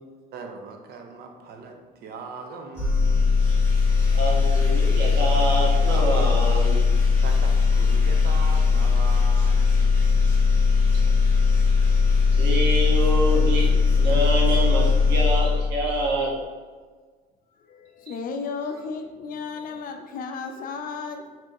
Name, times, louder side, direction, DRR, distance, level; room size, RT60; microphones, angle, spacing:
voice 1, 0.3-3.4 7.2-10.0, right 4 dB, 65° right, 4 dB, 0.7 m, -40 dB
sound 1, 2.8-16.1, left 5 dB, 15° left, 1.4 m, -19 dB
voice 2, 4.1-6.8 12.4-16.3, right 1 dB, 85° right, -3 dB, 1.3 m, -26 dB
voice 3, 17.6-21.4, left 5 dB, 55° left, 6 dB, 0.6 m, -34 dB
4.6 x 3.7 x 2.9 m, 1.5 s
cardioid pair, 110°, 17 cm